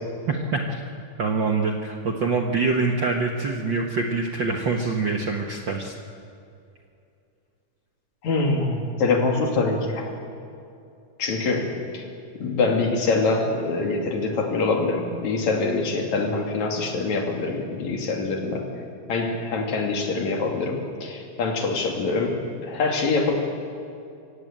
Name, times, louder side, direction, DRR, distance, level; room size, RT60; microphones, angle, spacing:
voice 1, 0.3-0.8 1.2-5.9, right 4 dB, 85° right, 1 dB, 1.0 m, -25 dB
voice 2, 8.2-10.1 11.2-12.0 12.4-18.6 19.1-23.3, left 3 dB, 50° left, 1 dB, 3.7 m, -24 dB
25.0 x 16.0 x 8.8 m, 2.6 s
omnidirectional pair, 4.2 m